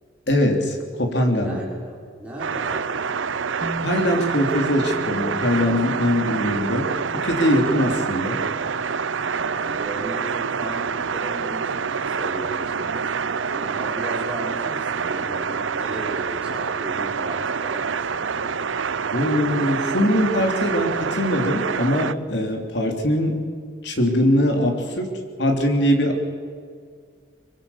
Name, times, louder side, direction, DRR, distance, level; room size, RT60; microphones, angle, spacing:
voice 1, 0.3-1.6 3.8-8.4 19.1-23.4 23.8-25.1 25.4-26.3, left 1 dB, 65° left, 3 dB, 3.4 m, -22 dB
voice 2, 1.4-3.1 9.4-18.5, right 1 dB, 5° right, -5 dB, 5.4 m, -36 dB
sound 1, 2.4-22.1, right 6 dB, 85° right, 0.7 m, -27 dB
Bass guitar, 3.6-9.9, equal, 25° right, 2.0 m, -39 dB
24.5 x 23.0 x 7.3 m, 2.1 s
head